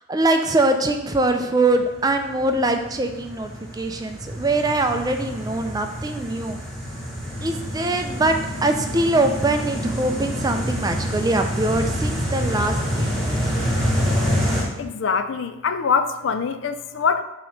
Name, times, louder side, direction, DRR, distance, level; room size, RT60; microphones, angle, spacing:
voice 1, 0.1-6.6 7.4-13.4, right 2 dB, 20° right, 6 dB, 0.3 m, -23 dB
sound 1, 1.7-14.6, equal, ahead, 1.1 m, -27 dB
voice 2, 14.8-17.2, left 5 dB, 60° left, 10 dB, 0.4 m, -23 dB
7.0 x 3.0 x 5.1 m, 0.97 s
head